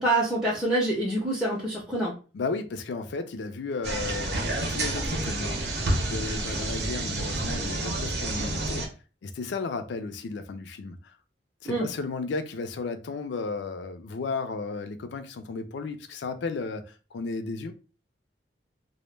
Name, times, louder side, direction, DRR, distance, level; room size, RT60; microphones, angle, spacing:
voice 1, 0.0-2.1 11.6-11.9, right 1 dB, 5° right, 0.5 m, -26 dB
voice 2, 2.3-5.7 6.1-8.9 9.2-11.1 11.6-17.7, left 4 dB, 75° left, 0.4 m, -34 dB
sound 1, 3.8-8.9, right 2 dB, 65° right, 0.6 m, -29 dB
2.1 x 2.0 x 3.1 m
head